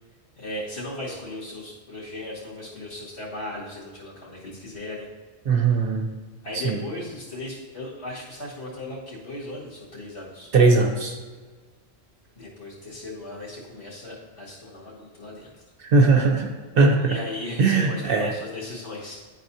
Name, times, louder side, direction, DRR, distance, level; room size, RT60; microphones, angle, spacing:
voice 1, 0.4-5.1 6.4-10.5 12.4-15.6 17.0-19.2, left 1 dB, 65° left, -6 dB, 2.4 m, -37 dB
voice 2, 5.4-6.1 6.6-6.8 10.5-11.1 15.9-17.0 17.6-18.3, right 3 dB, 55° right, 2 dB, 1.0 m, -19 dB
11.0 x 4.1 x 2.7 m, 1.4 s
omnidirectional pair, 1.2 m